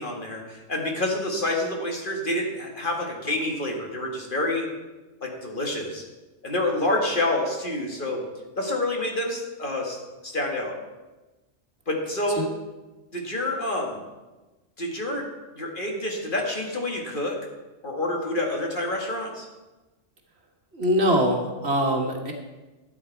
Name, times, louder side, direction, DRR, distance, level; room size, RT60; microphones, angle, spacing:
voice 1, 0.0-4.7 5.2-6.0 6.4-8.2 8.6-10.0 10.2-10.8 11.9-12.4 13.1-14.0 14.8-17.4 17.8-19.5, left 1 dB, 40° left, 0 dB, 1.7 m, -28 dB
voice 2, 20.7-22.3, equal, 55° right, 1 dB, 1.7 m, -23 dB
12.0 x 8.9 x 4.5 m, 1.1 s
omnidirectional pair, 1.3 m